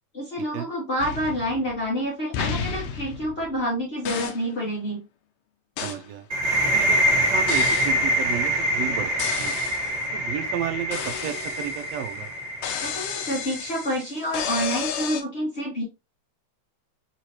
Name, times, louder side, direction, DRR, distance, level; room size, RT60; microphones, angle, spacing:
voice 1, 0.1-5.0 12.8-15.8, equal, 65° left, 0.6 m, -28 dB
sound 1, 1.0-1.9 2.3-3.7 4.0-4.5 5.8-6.1 7.5-8.0 9.2-10.0 10.9-12.0 12.6-15.2, left 7 dB, 80° left, 1.5 m, -32 dB
voice 2, 5.8-6.2 6.6-7.0 7.3-9.1 9.4-9.6 10.1-12.3, right 11 dB, 75° right, 1.6 m, -32 dB
sound 2, 6.3-13.8, equal, 40° right, 0.6 m, -25 dB
4.8 x 3.1 x 2.9 m
omnidirectional pair, 3.6 m